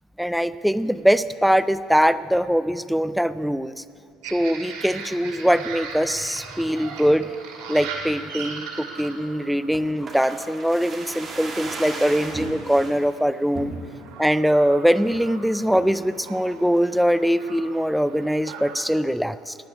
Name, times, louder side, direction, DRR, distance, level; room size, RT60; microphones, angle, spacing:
voice 1, 0.2-3.8 4.3-7.3 7.7-13.7 14.2-19.5, equal, ahead, 15 dB, 0.4 m, -22 dB
sound 1, 4.2-18.8, right 5 dB, 90° right, 2.3 m, -40 dB
sound 2, 9.7-13.0 13.5-14.2 14.6-14.7 14.9-15.2 15.7-16.0 16.5-17.2 17.5-17.6, right 2 dB, 30° right, 2.2 m, -36 dB
17.5 x 6.0 x 9.6 m, 2.3 s
cardioid pair, 120°, 0 cm